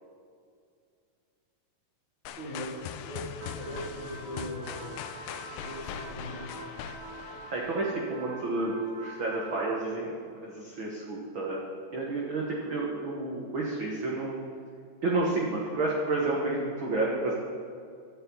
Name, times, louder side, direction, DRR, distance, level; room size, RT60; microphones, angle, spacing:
sound 1, 2.3-8.2, left 8 dB, 85° left, 2.5 m, -41 dB
voice 1, 2.4-5.0 5.6-6.6, equal, 15° left, -5 dB, 3.2 m, -40 dB
sound 2, 3.4-9.7, right 2 dB, 70° right, 3.7 m, -45 dB
voice 2, 7.5-10.1 10.4-11.6 11.9-14.4 15.0-17.3, right 2 dB, 50° right, -3 dB, 1.6 m, -30 dB
12.5 x 7.2 x 9.4 m, 2.3 s
omnidirectional pair, 4.2 m